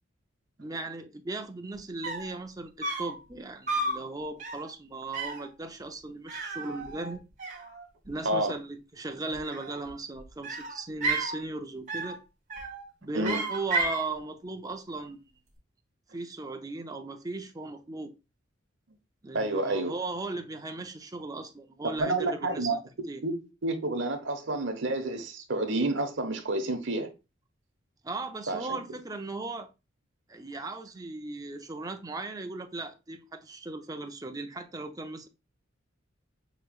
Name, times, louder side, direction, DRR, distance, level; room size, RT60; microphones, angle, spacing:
voice 1, 0.6-7.2 8.1-12.2 13.0-15.2 16.1-18.1 19.2-22.8 23.1-23.2 28.0-29.7 30.3-35.3, right 2 dB, 20° right, 0.6 m, -37 dB
sound 1, 1.7-1.8 2.0-2.4 2.8-3.2 3.7-4.0 4.4-4.7 5.1-5.5 6.3-7.1 7.4-8.1 9.3-10.0 10.4-11.4 11.9-12.2 12.5-12.9 13.2-14.1, right 2 dB, 40° right, 1.6 m, -32 dB
voice 2, 8.2-8.6 13.1-13.5 19.3-19.9 21.8-22.8 23.2-27.1 28.5-28.8, right 2 dB, 70° right, 1.1 m, -29 dB
6.7 x 3.1 x 2.4 m
head